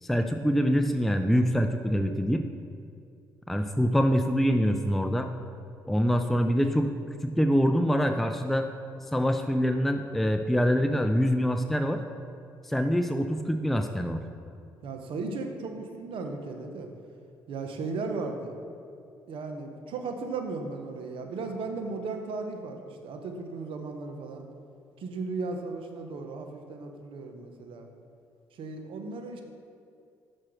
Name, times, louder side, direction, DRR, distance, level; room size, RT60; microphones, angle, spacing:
voice 1, 0.0-2.4 3.5-5.3 5.9-6.9 7.2-8.7 9.1-12.0 12.6-14.2, equal, ahead, 6 dB, 0.4 m, -25 dB
voice 2, 14.8-16.9 17.5-18.6 19.3-24.4 25.0-27.9 28.5-29.4, right 3 dB, 70° right, 5 dB, 0.8 m, -36 dB
6.1 x 4.4 x 6.1 m, 2.4 s
supercardioid pair, 60°, 9 cm